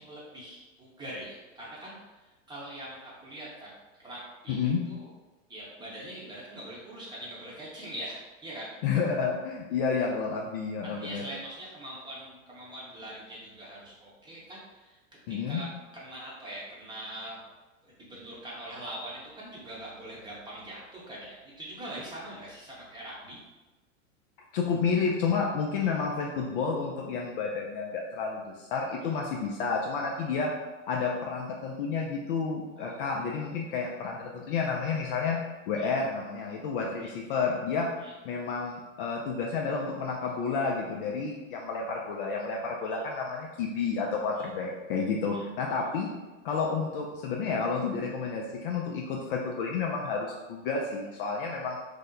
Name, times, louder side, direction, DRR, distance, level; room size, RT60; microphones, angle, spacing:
voice 1, 0.0-3.7 4.0-5.1 5.5-8.7 10.8-15.0 15.3-15.7 15.9-17.4 17.8-23.4 29.0-29.1 32.8-33.1 33.7-33.8 35.8-35.9 37.0-37.1 38.0-38.1 42.9-43.0 44.4-44.5 45.3-45.4, right 1 dB, 10° right, -6 dB, 0.8 m, -43 dB
voice 2, 4.5-4.8 8.8-11.2 15.3-15.6 24.5-30.5 30.9-35.4 35.7-37.9 38.2-46.1 46.4-51.8, left 5 dB, 45° left, -1 dB, 0.4 m, -30 dB
2.8 x 2.0 x 3.7 m, 1.1 s
hypercardioid pair, 115°, 40 cm